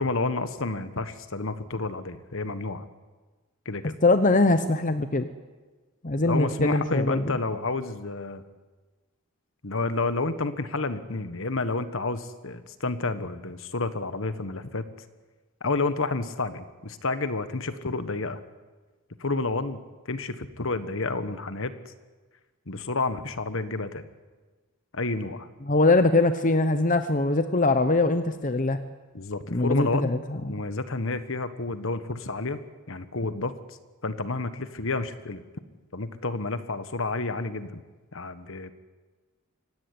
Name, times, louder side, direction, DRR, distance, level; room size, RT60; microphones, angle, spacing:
voice 1, 0.0-2.9 3.6-4.0 6.2-8.4 9.6-14.9 15.6-18.4 19.2-19.8 20.0-21.9 22.7-24.1 24.9-25.5 29.1-30.1 30.5-32.6 32.9-33.8 34.0-35.4 35.9-37.8 38.1-38.7, left 3 dB, 60° left, 11 dB, 1.4 m, -30 dB
voice 2, 4.0-5.3 6.0-7.2 25.6-28.8 29.5-30.2, left 2 dB, 35° left, 9 dB, 0.9 m, -22 dB
25.0 x 17.5 x 9.6 m, 1.3 s
head